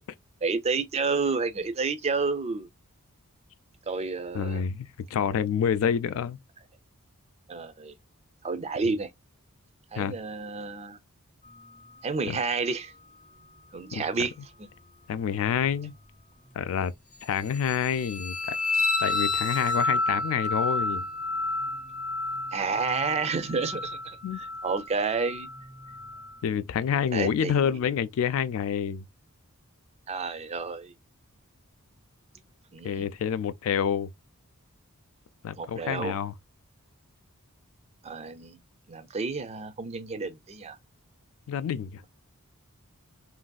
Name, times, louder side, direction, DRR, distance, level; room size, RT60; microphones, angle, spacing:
voice 1, 0.4-2.7 3.9-4.6 7.5-7.9 8.4-9.1 9.9-11.0 12.0-12.9 13.7-14.3 22.5-25.5 27.1-27.7 30.1-30.9 32.7-33.1 35.6-36.2 38.0-38.6 38.9-40.8, right 4 dB, 30° right, 0.4 m, -30 dB
voice 2, 4.3-6.4 10.0-10.2 12.3-12.4 13.9-14.0 15.1-15.9 16.5-16.9 17.2-18.6 19.0-21.1 24.2-24.4 26.4-29.0 32.8-34.1 35.4-36.3 41.5-42.0, left 8 dB, 65° left, 0.3 m, -28 dB
sound 1, 17.5-26.4, left 3 dB, 35° left, 0.8 m, -30 dB
3.0 x 2.6 x 2.2 m
head